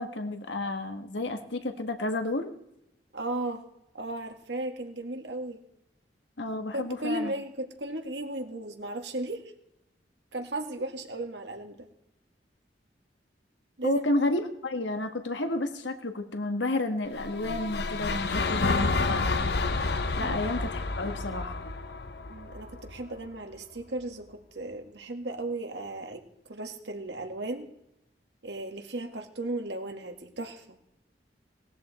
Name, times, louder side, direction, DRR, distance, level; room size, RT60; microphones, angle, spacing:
voice 1, 0.0-2.5 6.4-7.3 13.8-19.5 20.2-21.6, left 2 dB, 80° left, 7 dB, 1.6 m, -31 dB
voice 2, 3.1-3.6 3.9-5.6 6.7-9.5 10.3-11.9 13.8-14.1 20.2-20.4 22.3-27.7 28.4-30.8, right 2 dB, 70° right, 4 dB, 2.0 m, -35 dB
sound 1, 17.1-23.3, left 3 dB, 60° left, 0.9 m, -30 dB
18.5 x 13.5 x 4.3 m, 0.84 s
head